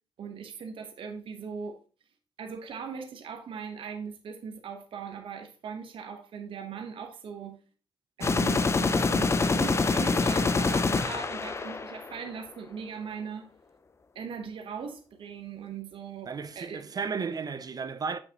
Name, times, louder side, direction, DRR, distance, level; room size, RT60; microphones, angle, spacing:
voice 1, 0.2-1.8 2.4-7.6 8.2-13.5 14.1-16.8, right 6 dB, 70° right, 1.0 m, -39 dB
sound 1, 8.2-12.3, left 4 dB, 30° left, 0.5 m, -26 dB
voice 2, 16.3-18.2, right 5 dB, 45° right, 0.6 m, -34 dB
7.5 x 6.1 x 2.9 m
cardioid pair, 85°, 9 cm